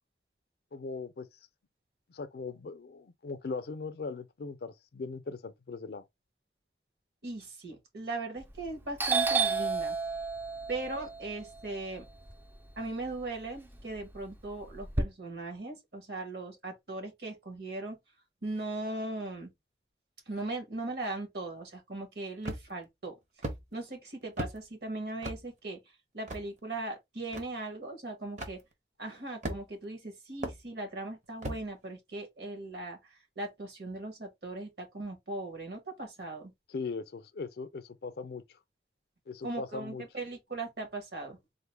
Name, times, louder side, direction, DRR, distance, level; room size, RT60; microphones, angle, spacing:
voice 1, 0.7-1.3 2.1-6.0 36.7-38.6 39.3-40.0, left 4 dB, 60° left, 0.4 m, -39 dB
voice 2, 7.2-9.9 10.7-12.0 12.8-18.0 18.4-19.5 20.3-23.2 23.7-25.8 26.1-28.6 29.0-36.5 39.4-41.4, right 2 dB, 65° right, 1.4 m, -39 dB
Doorbell, 8.4-8.7 9.0-13.1 13.5-15.0, right 4 dB, 10° right, 0.3 m, -31 dB
sound 1, 22.4-22.8 23.4-23.6 24.4-24.6 25.2-25.4 26.3-26.4 27.3-27.4 28.4-28.6 29.4-29.8 30.4-30.6 31.4-31.6, right 1 dB, 40° right, 0.8 m, -36 dB
3.8 x 2.1 x 3.3 m
head